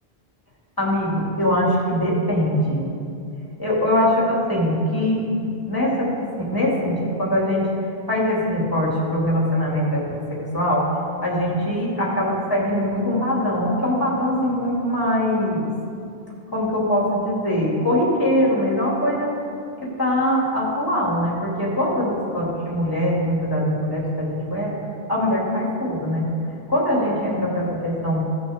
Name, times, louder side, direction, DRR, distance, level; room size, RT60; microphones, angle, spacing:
voice 1, 0.8-2.9 3.6-7.7 8.1-10.9 11.2-15.7 16.5-19.3 19.8-24.8 25.1-26.3 26.7-28.2, left 1 dB, 20° left, -5 dB, 2.5 m, -22 dB
16.5 x 6.1 x 3.6 m, 2.5 s
omnidirectional pair, 1.1 m